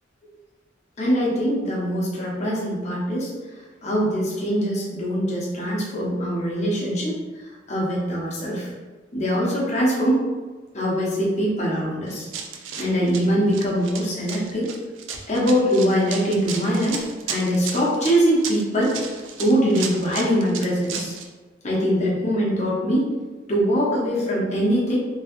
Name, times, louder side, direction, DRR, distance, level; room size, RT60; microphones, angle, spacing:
voice 1, 1.0-3.3 3.8-7.2 7.7-8.7 9.1-10.3 10.7-12.3 12.8-14.7 15.3-18.9 19.4-21.1 21.6-23.1 23.5-25.0, equal, 40° left, -6 dB, 1.0 m, -22 dB
Run, 12.1-21.3, right 6 dB, 85° right, 0.4 m, -34 dB
3.1 x 3.0 x 3.0 m, 1.3 s
head